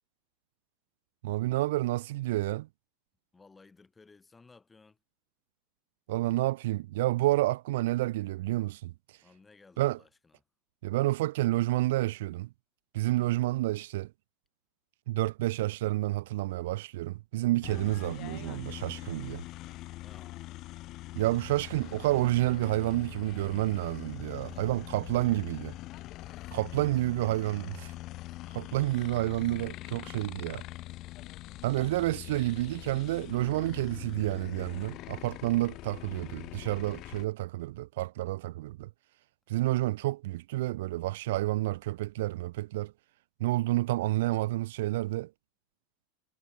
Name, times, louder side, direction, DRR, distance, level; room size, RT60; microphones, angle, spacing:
voice 1, 1.2-2.7 6.1-8.9 9.8-10.0 10.8-12.5 12.9-14.1 15.1-19.4 21.1-25.8 26.5-27.9 28.5-30.6 31.6-38.9 39.5-42.9 43.4-45.3, right 17 dB, 70° right, 0.4 m, -29 dB
voice 2, 3.3-5.0 9.2-10.4 13.0-13.3 20.0-20.4 24.3-24.7 26.1-27.2 28.2-28.6, left 4 dB, 15° left, 3.8 m, -59 dB
sound 1, 17.6-37.2, left 17 dB, 50° left, 0.6 m, -43 dB
hypercardioid pair, 95°, 0 cm